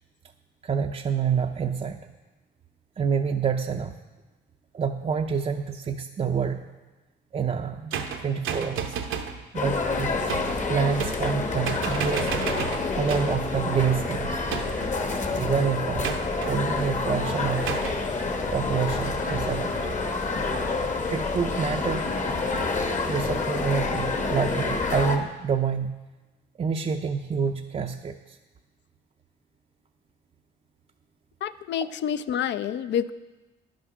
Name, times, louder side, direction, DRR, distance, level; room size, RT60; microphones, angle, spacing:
voice 1, 0.6-2.0 3.0-4.0 4.7-6.7 7.3-9.0 9.5-10.2 10.7-12.3 12.9-14.4 15.4-16.2 16.4-17.8 18.5-20.0 21.1-22.1 23.1-26.0 26.6-28.4, right 6 dB, 30° right, 3 dB, 0.5 m, -27 dB
sound 1, 7.9-9.4 10.3-10.6 11.0-11.4 11.6-13.4 14.5-15.0 16.0-16.5 17.7-18.0, right 7 dB, 80° right, 0.8 m, -32 dB
sound 2, 9.5-25.2, left 3 dB, 40° left, 1.1 m, -28 dB
voice 2, 31.4-33.1, left 9 dB, 65° left, 13 dB, 0.5 m, -28 dB
10.0 x 6.2 x 6.0 m, 1.2 s
cardioid pair, 90°, 20 cm